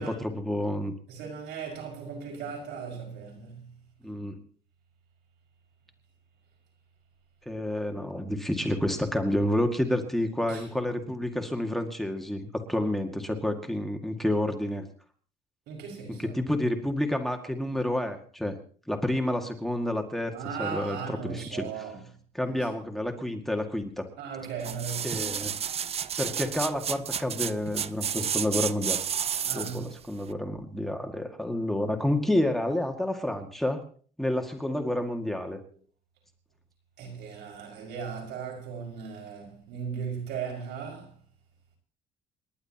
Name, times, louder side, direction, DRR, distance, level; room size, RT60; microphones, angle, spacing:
voice 1, 0.0-0.9 4.0-4.4 7.5-14.9 16.2-18.6 18.9-20.3 20.6-21.7 22.3-24.1 25.0-25.6 26.2-29.0 29.5-33.8 34.2-35.6, left 1 dB, ahead, 2.0 m, -29 dB
voice 2, 1.1-3.7 10.5-10.7 15.7-16.4 20.3-22.0 22.4-22.6 24.2-25.5 29.5-29.9 37.0-41.1, right 6 dB, 80° right, 5.8 m, -37 dB
sound 1, 24.6-29.9 30.3-30.4, right 8 dB, 35° right, 0.6 m, -31 dB
28.5 x 11.5 x 2.9 m
cardioid pair, 110°, 17 cm